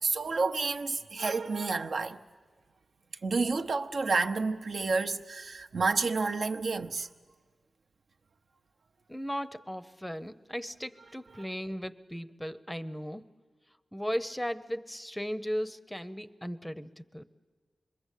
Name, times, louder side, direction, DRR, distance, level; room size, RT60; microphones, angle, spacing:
voice 1, 0.0-2.2 3.2-7.1 11.4-11.5, right 4 dB, 65° right, 0.8 m, -30 dB
voice 2, 9.1-13.2 13.9-17.2, equal, 5° left, 0.7 m, -36 dB
26.0 x 22.0 x 8.3 m
wide cardioid pair, 85°, 0 cm